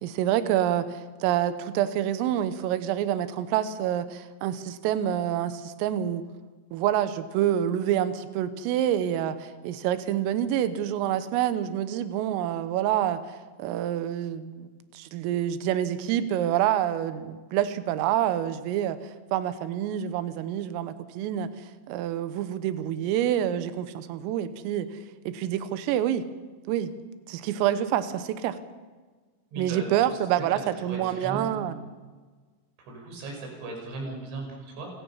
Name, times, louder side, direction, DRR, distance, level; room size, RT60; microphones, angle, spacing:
voice 1, 0.0-6.2 6.7-13.2 13.6-19.0 19.3-21.5 21.9-24.9 25.3-26.2 26.7-26.9 27.3-28.6 29.6-31.8, right 11 dB, 85° right, 11 dB, 3.7 m, -27 dB
voice 2, 29.5-30.5 30.9-31.7 32.8-34.9, right 2 dB, 60° right, 1 dB, 7.8 m, -38 dB
30.0 x 17.0 x 5.7 m, 1.4 s
omnidirectional pair, 5.9 m